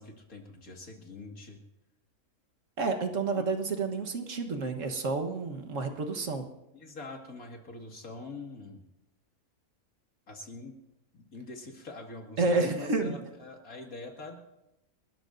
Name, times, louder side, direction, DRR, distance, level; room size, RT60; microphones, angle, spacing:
voice 1, 0.0-1.6 3.4-3.5 6.7-8.8 10.3-10.8 11.1-14.4, left 3 dB, 70° left, 1 dB, 2.6 m, -44 dB
voice 2, 2.8-6.5 12.4-13.2, right 3 dB, 60° right, 5 dB, 1.6 m, -30 dB
29.5 x 13.0 x 2.7 m, 0.89 s
omnidirectional pair, 1.5 m